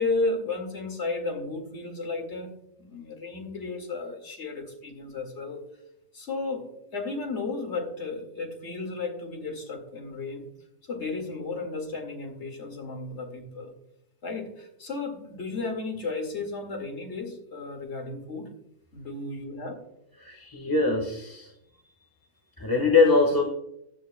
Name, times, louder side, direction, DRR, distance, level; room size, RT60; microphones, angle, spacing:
voice 1, 0.0-5.6 6.1-10.5 10.9-13.7 14.2-18.5 18.9-19.8, left 3 dB, 50° left, 3 dB, 2.3 m, -33 dB
voice 2, 20.2-21.5 22.6-23.4, left 3 dB, 15° left, 0 dB, 1.3 m, -22 dB
14.5 x 10.0 x 2.2 m, 0.78 s
omnidirectional pair, 1.5 m